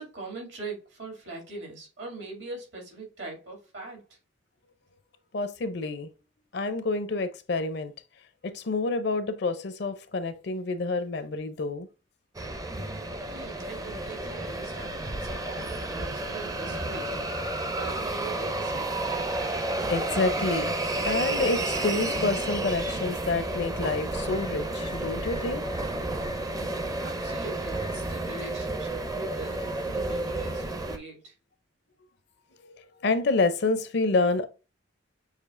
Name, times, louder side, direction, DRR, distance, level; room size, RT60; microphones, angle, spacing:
voice 1, 0.0-4.0 13.3-17.1 17.6-18.9 27.0-31.3, right 3 dB, 75° right, 2.4 m, -41 dB
voice 2, 5.3-6.1 6.5-7.9 8.4-11.9 16.6-16.7 19.6-20.7 21.0-25.6 32.6-34.5, left 3 dB, 60° left, 0.5 m, -28 dB
sound 1, 12.3-31.0, right 2 dB, 20° right, 0.5 m, -31 dB
6.6 x 2.8 x 2.5 m
head